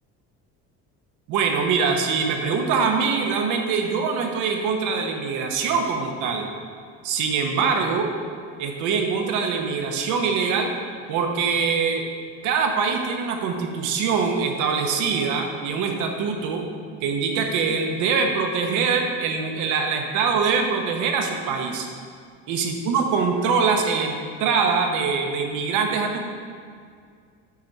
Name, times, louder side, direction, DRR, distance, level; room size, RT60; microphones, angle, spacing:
voice 1, 1.3-6.5 7.0-8.1 8.6-10.7 11.1-12.0 12.4-16.7 17.0-21.9 22.5-26.3, right 5 dB, 75° right, 3 dB, 1.0 m, -23 dB
7.3 x 4.5 x 5.4 m, 2.1 s
cardioid pair, 135°, 31 cm